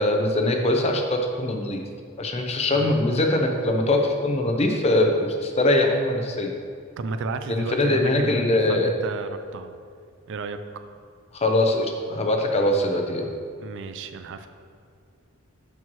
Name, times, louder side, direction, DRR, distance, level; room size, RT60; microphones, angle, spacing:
voice 1, 0.0-1.8 2.2-6.5 7.5-8.9 11.3-13.3, left 1 dB, 30° left, 3 dB, 0.7 m, -22 dB
voice 2, 7.0-9.7 10.3-10.6 13.6-14.5, right 3 dB, 55° right, 9 dB, 0.4 m, -32 dB
12.0 x 4.6 x 3.0 m, 2.3 s
head